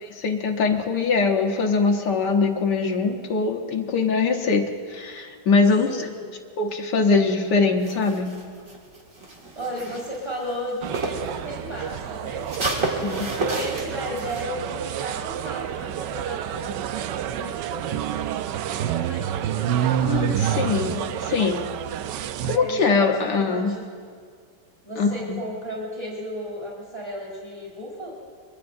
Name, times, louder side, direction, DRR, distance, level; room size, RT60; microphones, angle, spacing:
voice 1, 0.0-4.6 4.9-6.1 6.6-8.3 13.0-13.3 20.0-21.7 22.4-23.7 25.0-25.4, left 4 dB, 75° left, 2 dB, 1.7 m, -22 dB
voice 2, 5.9-6.3 9.5-12.4 13.4-18.4 18.6-20.0 20.6-21.3 22.5-23.9 24.8-28.1, equal, 25° left, -5 dB, 3.8 m, -34 dB
sound 1, 7.8-11.3 11.7-14.4, right 2 dB, 45° right, 2.5 m, -31 dB
sound 2, 10.8-22.6, right 10 dB, 80° right, 1.2 m, -28 dB
25.0 x 22.5 x 2.6 m, 2.1 s
omnidirectional pair, 1.9 m